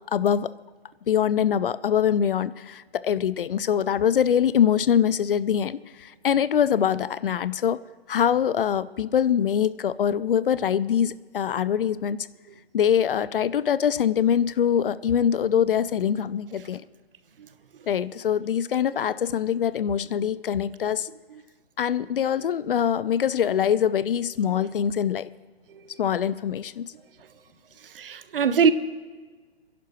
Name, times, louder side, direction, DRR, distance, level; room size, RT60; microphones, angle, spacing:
voice 1, 0.1-0.5 1.1-7.8 8.1-12.3 12.7-16.8 17.9-21.1 21.8-25.3 26.0-26.9, left 8 dB, 55° left, 0.5 m, -23 dB
voice 2, 27.8-28.7, right 6 dB, 60° right, 0.8 m, -23 dB
29.5 x 11.0 x 3.2 m
figure-of-eight pair, 125°, 32 cm